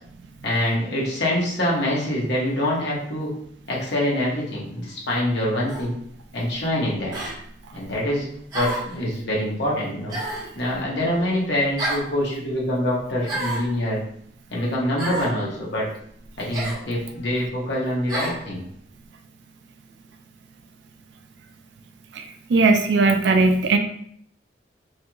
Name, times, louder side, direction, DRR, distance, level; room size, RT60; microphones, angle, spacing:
voice 1, 0.4-3.3 3.7-5.9 6.3-7.2 7.7-8.2 8.5-10.2 10.6-14.0 14.5-15.8 16.4-18.6, left 1 dB, 75° left, -4 dB, 1.1 m, -25 dB
sound 1, 5.7-5.9 7.1-7.4 8.5-8.9 10.1-10.5 11.8-12.1 13.2-13.7 15.0-15.3 16.5-16.8 18.1-18.4, right 1 dB, 20° right, 0.9 m, -29 dB
voice 2, 22.5-23.8, right 3 dB, 80° right, 6 dB, 0.4 m, -18 dB
3.3 x 2.3 x 2.9 m, 0.66 s
head